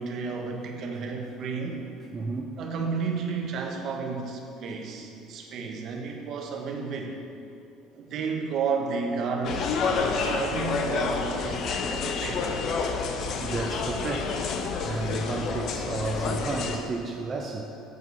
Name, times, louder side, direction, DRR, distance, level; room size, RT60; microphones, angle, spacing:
voice 1, 0.0-1.8 2.6-7.2 7.9-12.5, right 5 dB, 55° right, 2 dB, 1.2 m, -32 dB
voice 2, 2.1-2.6 10.2-10.3 11.1-11.2 13.4-14.5 14.8-17.7, right 3 dB, 30° right, 1 dB, 0.6 m, -32 dB
sound 1, 9.4-16.8, left 4 dB, 55° left, 0.7 m, -29 dB
8.2 x 4.6 x 7.0 m, 2.6 s
supercardioid pair, 105°, 0 cm